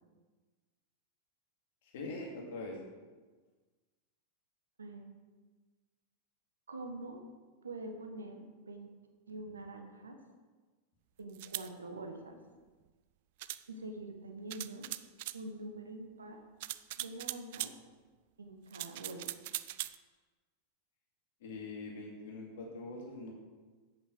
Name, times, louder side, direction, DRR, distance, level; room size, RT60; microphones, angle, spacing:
voice 1, 1.8-2.8 21.4-23.3, left 2 dB, 55° left, -1 dB, 2.4 m, -43 dB
voice 2, 6.7-7.2 7.6-8.9 9.3-10.2 11.2-12.4 13.7-14.9 15.3-16.4 17.0-17.7 18.4-19.2, right 2 dB, 75° right, 5 dB, 1.5 m, -45 dB
sound 1, 11.3-11.7 13.4-13.6 14.5-15.4 16.6-17.7 18.7-20.0, right 16 dB, 50° right, 0.4 m, -40 dB
8.6 x 8.4 x 6.4 m, 1.3 s
figure-of-eight pair, 90°, 0 cm